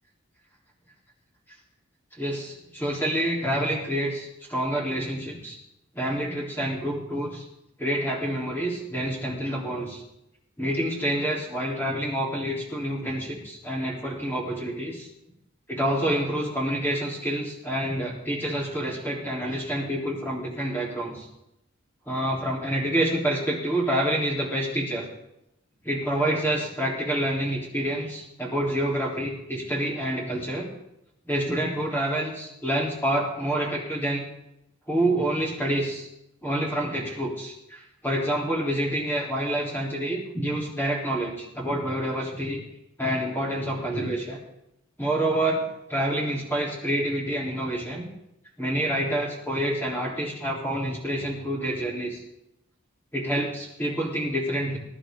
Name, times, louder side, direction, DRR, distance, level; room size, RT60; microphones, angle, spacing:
voice 1, 2.1-5.6 5.9-7.4 7.8-10.0 10.6-15.1 15.7-21.3 22.1-25.1 25.8-30.7 31.2-34.2 34.9-36.1 36.4-42.6 43.0-44.4 45.0-48.0 48.6-52.2 53.1-54.8, right 1 dB, 10° left, -4 dB, 4.0 m, -27 dB
21.5 x 11.0 x 4.0 m, 0.83 s
head